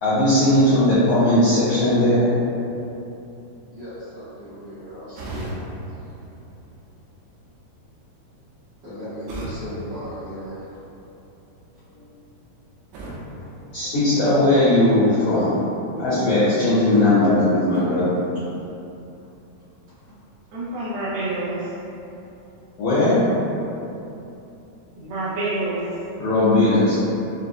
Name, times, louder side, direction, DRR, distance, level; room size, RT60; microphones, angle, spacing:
voice 1, 0.0-2.3 13.7-15.6 16.0-18.1 22.8-23.2 26.2-27.1, left 1 dB, 85° left, -11 dB, 1.6 m, -18 dB
voice 2, 3.7-5.4 8.8-10.6, equal, 55° right, -16 dB, 1.7 m, -36 dB
sound 1, 5.1-7.1 9.3-11.0 12.9-14.5, right 1 dB, 90° right, 2.8 m, -37 dB
voice 3, 20.5-21.8 25.0-26.1, right 2 dB, 70° right, -11 dB, 2.5 m, -28 dB
6.7 x 2.6 x 2.5 m, 2.8 s
omnidirectional pair, 4.8 m